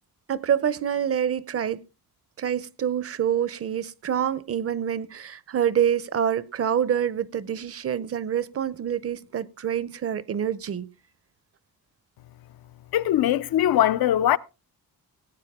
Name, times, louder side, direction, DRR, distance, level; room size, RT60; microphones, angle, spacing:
voice 1, 0.3-1.8 2.4-10.9, right 9 dB, 40° right, 0.5 m, -26 dB
voice 2, 12.9-14.4, left 12 dB, 85° left, 0.6 m, -21 dB
17.5 x 8.9 x 3.5 m
wide cardioid pair, 170°, 35 cm